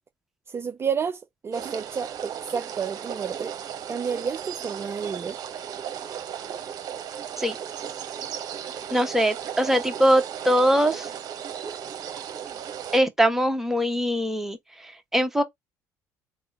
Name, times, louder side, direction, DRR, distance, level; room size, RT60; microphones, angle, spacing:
voice 1, 0.5-3.6 3.9-5.4, right 6 dB, 30° right, 0.4 m, -30 dB
sound 1, 1.5-13.0, right 9 dB, 50° right, 0.9 m, -35 dB
voice 2, 8.9-11.1 12.9-15.4, equal, 5° right, 1.1 m, -22 dB
3.6 x 2.9 x 4.1 m
hypercardioid pair, 65°, 8 cm